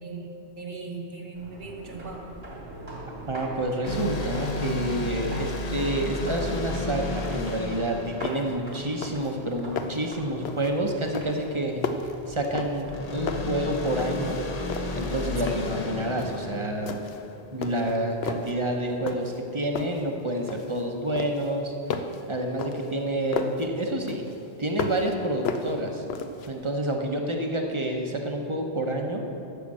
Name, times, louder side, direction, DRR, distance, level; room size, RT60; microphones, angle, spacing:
voice 1, 0.0-2.3 15.4-15.6, right 3 dB, 50° right, 2 dB, 1.3 m, -38 dB
sound 1, 1.3-16.6, right 1 dB, 75° right, 3.1 m, -44 dB
voice 2, 3.3-11.9 12.3-14.4 14.9-17.0 17.5-21.7 22.3-24.2 24.6-26.0 26.5-29.2, right 1 dB, 30° right, 2 dB, 1.0 m, -28 dB
sound 2, 3.9-9.3 12.8-17.6, left 2 dB, 40° left, 0.9 m, -33 dB
sound 3, 7.8-7.9 8.2-8.6 8.9-9.3 9.6-10.1 10.4-10.8 11.1-13.0 13.3-14.3 14.6-15.8 16.2-16.5 16.9-17.3 17.6-18.6 19.1-19.4 19.7-20.8 21.2-23.7 24.1-25.1 25.4-26.5, left 5 dB, 70° left, 0.9 m, -34 dB
11.5 x 6.7 x 7.6 m, 2.9 s
omnidirectional pair, 1.1 m